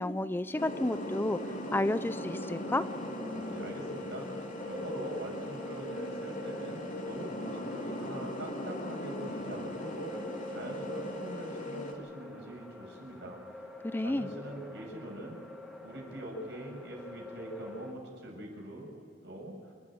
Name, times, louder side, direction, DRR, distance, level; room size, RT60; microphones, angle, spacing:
voice 1, 0.0-1.4 1.7-2.9 13.8-14.3, left 1 dB, 10° left, 13 dB, 0.4 m, -31 dB
sound 1, 0.6-11.9, left 1 dB, 50° left, 3.4 m, -39 dB
sound 2, 2.1-17.9, left 2 dB, 5° right, 2.5 m, -48 dB
voice 2, 3.3-10.2 10.5-13.4 14.0-15.4 15.8-18.9 19.2-19.6, right 1 dB, 70° right, 0 dB, 6.9 m, -43 dB
28.0 x 13.0 x 8.9 m, 2.4 s
head